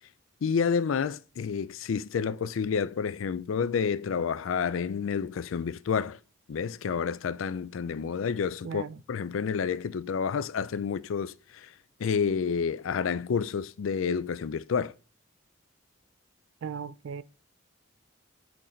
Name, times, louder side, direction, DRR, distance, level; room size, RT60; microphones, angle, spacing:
voice 1, 0.4-6.2 6.5-11.7 12.0-14.9, left 6 dB, 80° left, 0.4 m, -29 dB
voice 2, 8.6-9.0 16.6-17.2, right 6 dB, 70° right, 0.3 m, -37 dB
6.3 x 5.9 x 3.9 m
head